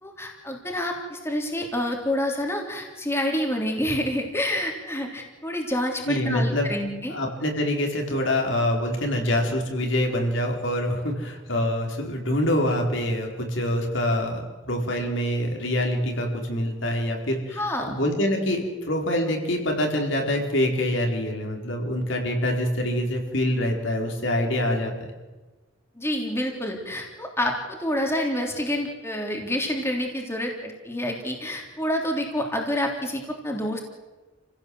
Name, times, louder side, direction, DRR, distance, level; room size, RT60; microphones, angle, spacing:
voice 1, 0.0-7.2 17.5-18.0 26.0-33.8, left 1 dB, 15° left, 1 dB, 3.3 m, -28 dB
voice 2, 6.1-6.7 7.1-25.1, left 1 dB, 70° left, 2 dB, 4.5 m, -25 dB
29.5 x 16.5 x 7.9 m, 1.2 s
head